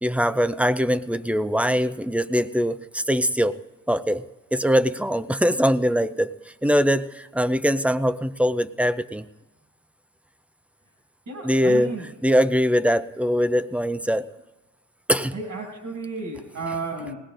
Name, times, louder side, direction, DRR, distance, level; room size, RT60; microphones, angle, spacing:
voice 1, 0.0-3.6 3.9-4.2 4.5-9.3 11.4-11.9 12.2-14.3 15.1-15.3, equal, 5° right, 14 dB, 0.4 m, -22 dB
voice 2, 11.3-12.1 15.3-17.2, right 3 dB, 70° right, 1 dB, 6.4 m, -32 dB
20.0 x 18.0 x 2.5 m, 1.1 s
cardioid pair, 95°, 31 cm